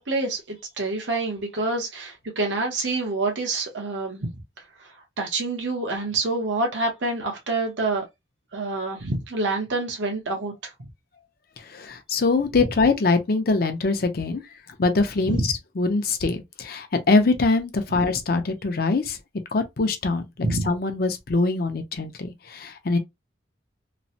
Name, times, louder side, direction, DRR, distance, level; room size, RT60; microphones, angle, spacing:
voice 1, 0.0-4.3 4.8-8.0 8.5-10.7 15.2-15.5 20.4-20.7, right 2 dB, 85° right, 0.9 m, -27 dB
voice 2, 11.6-14.4 14.8-15.4 15.8-19.2 19.5-20.2 20.6-23.0, left 3 dB, 55° left, 0.6 m, -23 dB
3.1 x 2.0 x 2.7 m
head